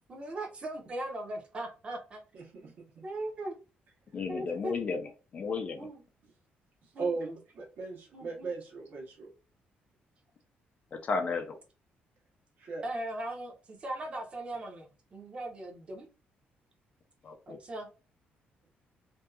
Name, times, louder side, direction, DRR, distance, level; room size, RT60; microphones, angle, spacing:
voice 1, 0.1-2.2 2.6-2.7 3.0-3.6 4.3-4.7 5.8-6.0 6.9-7.3 8.1-8.5 12.8-16.1 17.5-17.9, right 1 dB, 30° right, 1 dB, 0.7 m, -39 dB
voice 2, 2.3-3.0 6.8-9.3 12.6-12.8, right 4 dB, 60° right, -1 dB, 1.0 m, -38 dB
voice 3, 4.1-5.0 5.3-5.9 10.9-11.6 17.2-17.6, left 4 dB, 40° left, 6 dB, 0.4 m, -33 dB
2.6 x 2.3 x 2.3 m, 0.33 s
cardioid pair, 155°, 4 cm